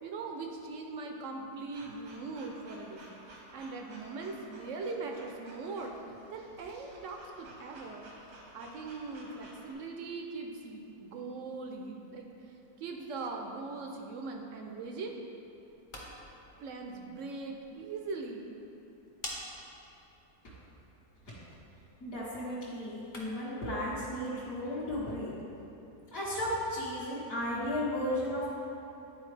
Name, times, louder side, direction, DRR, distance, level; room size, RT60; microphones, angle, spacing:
voice 1, 0.0-6.0 6.3-8.1 8.5-12.3 12.8-15.2 16.6-18.6, right 3 dB, 70° right, 2 dB, 0.8 m, -40 dB
sound 1, 1.7-9.7, right 1 dB, 90° right, 1.6 m, -53 dB
sound 2, 15.6-23.6, left 1 dB, 25° left, 0.8 m, -50 dB
voice 2, 22.0-25.3 26.1-28.5, left 1 dB, 60° left, -10 dB, 1.6 m, -34 dB
10.5 x 4.2 x 3.2 m, 2.8 s
omnidirectional pair, 1.7 m